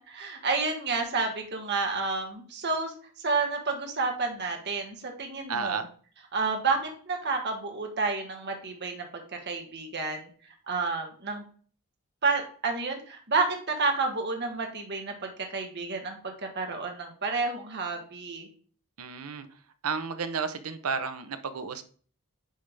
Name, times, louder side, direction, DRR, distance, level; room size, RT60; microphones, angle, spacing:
voice 1, 0.0-2.9 3.2-5.8 6.3-10.3 10.7-11.4 12.2-18.5, right 4 dB, 50° right, 3 dB, 1.4 m, -30 dB
voice 2, 5.5-5.9 19.0-19.5 19.8-21.8, right 5 dB, 80° right, 10 dB, 0.8 m, -32 dB
9.3 x 3.4 x 3.4 m, 0.43 s
head